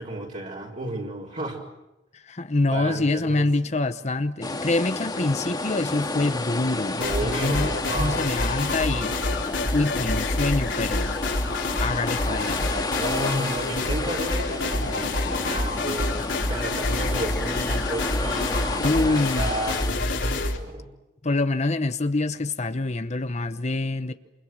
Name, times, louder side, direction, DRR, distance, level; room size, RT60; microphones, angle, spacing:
voice 1, 0.0-1.6 2.7-3.7 7.0-8.3 12.2-20.9, right 1 dB, 45° right, 5.0 m, -33 dB
voice 2, 2.1-9.1 9.7-11.2 11.8-12.7 18.8-19.5 19.9-20.4 21.2-24.1, left 2 dB, 40° left, 0.9 m, -26 dB
sound 1, 4.4-19.9, left 2 dB, 20° left, 1.9 m, -31 dB
sound 2, 7.0-20.6, left 2 dB, 75° left, 3.9 m, -27 dB
29.0 x 28.5 x 6.3 m
head